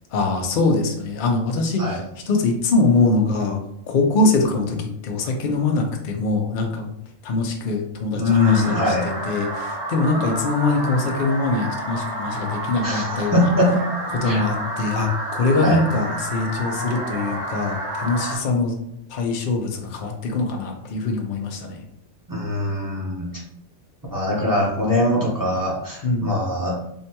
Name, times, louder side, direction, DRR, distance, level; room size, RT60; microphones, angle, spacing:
voice 1, 0.1-2.0 2.3-3.6 3.9-6.9 7.2-13.5 14.1-18.8 19.1-21.8 26.0-26.4, left 3 dB, 90° left, 2 dB, 0.4 m, -23 dB
voice 2, 8.1-9.1 12.8-13.8 14.2-14.4 15.6-15.8 22.3-23.3 24.1-26.8, left 1 dB, 20° right, -5 dB, 0.6 m, -22 dB
sound 1, 8.4-18.4, right 1 dB, 60° right, 1.3 m, -30 dB
3.6 x 2.2 x 2.8 m, 0.75 s
omnidirectional pair, 1.4 m